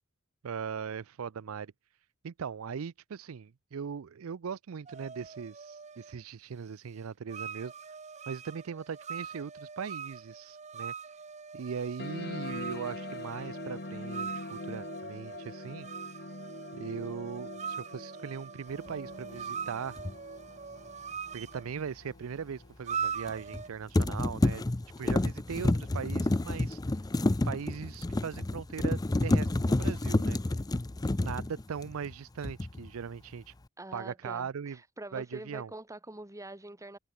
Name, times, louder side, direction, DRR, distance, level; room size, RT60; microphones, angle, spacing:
voice 1, 0.4-1.7 2.2-7.7 8.3-10.9 11.5-15.9 16.7-20.0 21.3-24.6 25.0-26.8 27.4-30.4 31.1-33.5 33.9-34.8 35.1-35.7, right 6 dB, 85° right, 0.5 m, -39 dB
sound 1, 4.9-6.2 7.3-21.7 22.9-23.7, right 6 dB, 35° right, 1.1 m, -42 dB
sound 2, 12.0-23.0, left 2 dB, 50° left, 2.3 m, -44 dB
sound 3, 20.0-20.1 23.3-23.6 23.9-32.1 32.4-32.9, left 2 dB, 20° left, 0.5 m, -29 dB
voice 2, 33.8-37.0, right 2 dB, 15° right, 2.2 m, -45 dB
head